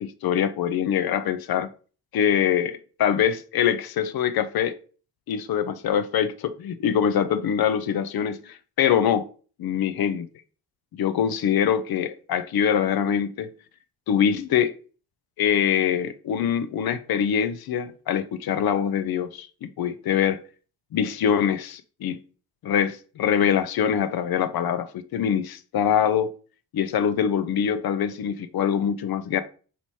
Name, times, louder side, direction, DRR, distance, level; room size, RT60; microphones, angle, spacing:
voice 1, 0.0-1.7 2.1-4.8 5.3-9.3 9.6-10.3 10.9-13.5 14.1-14.7 15.4-20.4 20.9-22.2 22.6-26.3 26.7-29.4, left 8 dB, 55° left, 0.5 m, -24 dB
2.9 x 2.8 x 4.5 m
cardioid pair, 60°, 43 cm